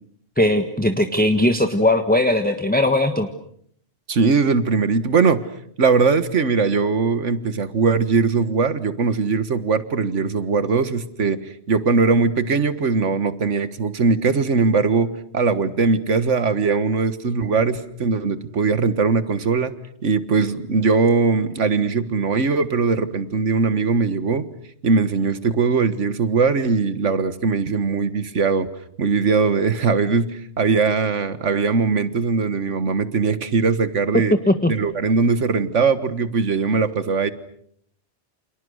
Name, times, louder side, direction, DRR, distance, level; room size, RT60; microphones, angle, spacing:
voice 1, 0.4-3.3 34.1-34.7, left 1 dB, 10° left, 7 dB, 1.3 m, -19 dB
voice 2, 4.1-5.5 5.8-19.7 20.0-24.5 24.8-28.7 29.0-34.4 34.7-37.3, right 4 dB, 85° right, 13 dB, 1.8 m, -20 dB
29.5 x 28.0 x 6.5 m, 0.66 s
omnidirectional pair, 1.2 m